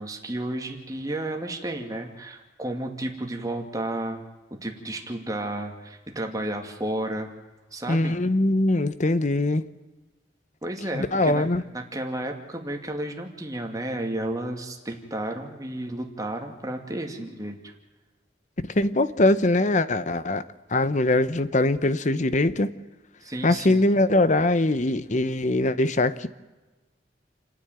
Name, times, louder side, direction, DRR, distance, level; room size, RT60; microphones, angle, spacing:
voice 1, 0.0-4.2 4.6-7.3 7.7-8.2 10.6-11.5 11.7-17.7 23.2-23.9, right 1 dB, 20° right, 3 dB, 2.4 m, -32 dB
voice 2, 7.9-9.6 10.9-11.6 18.7-20.4 20.7-22.7 23.4-26.3, left 2 dB, 40° left, 14 dB, 0.9 m, -22 dB
29.5 x 9.9 x 9.1 m, 1.2 s
head